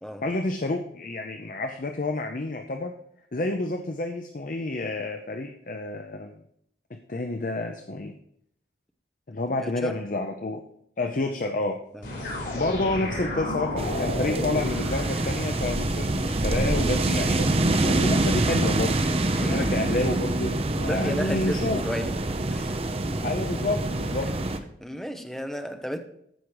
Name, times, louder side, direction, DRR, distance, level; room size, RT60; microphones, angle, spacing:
voice 1, 0.2-2.9 3.3-6.4 7.1-8.1 9.3-10.6 11.0-11.8 12.5-21.8 23.2-24.3, left 2 dB, 45° left, 5 dB, 0.6 m, -29 dB
voice 2, 9.6-10.0 11.9-12.1 19.4-19.7 20.8-22.1 22.5-22.8 24.8-26.0, equal, 5° left, 5 dB, 0.8 m, -33 dB
sound 1, 12.0-16.0, left 1 dB, 90° left, 4.7 m, -32 dB
sound 2, 13.8-24.6, right 2 dB, 35° right, 0.7 m, -26 dB
14.0 x 5.0 x 4.8 m, 0.70 s
head